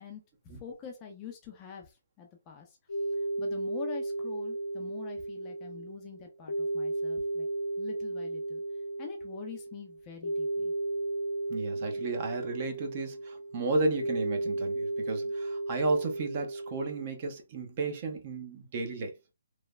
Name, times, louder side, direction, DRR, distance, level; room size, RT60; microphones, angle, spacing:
voice 1, 0.0-2.8 3.1-7.5 7.8-8.6 9.0-10.7, left 7 dB, 20° left, 0.4 m, -45 dB
sound 1, 2.9-17.1, right 2 dB, 85° left, 0.5 m, -34 dB
voice 2, 11.5-19.1, right 3 dB, 30° right, 0.6 m, -33 dB
3.1 x 2.0 x 2.3 m
hypercardioid pair, 165°, 0 cm